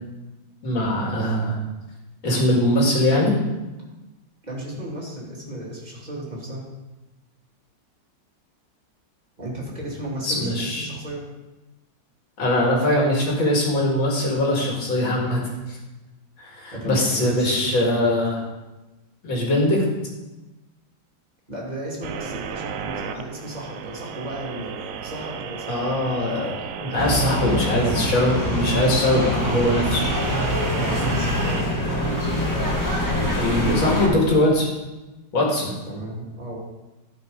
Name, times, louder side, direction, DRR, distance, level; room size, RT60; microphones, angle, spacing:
voice 1, 0.6-1.6 2.2-3.4 10.2-10.9 12.4-15.4 15.7-15.8 16.4-18.4 19.2-19.8 25.7-30.0 33.3-34.7 35.3-35.7, left 1 dB, 80° left, -2 dB, 2.9 m, -21 dB
voice 2, 4.4-6.6 9.4-11.2 16.7-17.7 21.5-25.9 27.2-27.8 30.7-31.7 35.8-36.6, right 1 dB, 20° right, -5 dB, 2.7 m, -34 dB
sound 1, 22.0-31.6, right 7 dB, 80° right, 0.7 m, -34 dB
sound 2, 27.0-34.1, equal, 10° left, 1.5 m, -24 dB
12.0 x 5.5 x 5.1 m, 1.1 s
omnidirectional pair, 2.1 m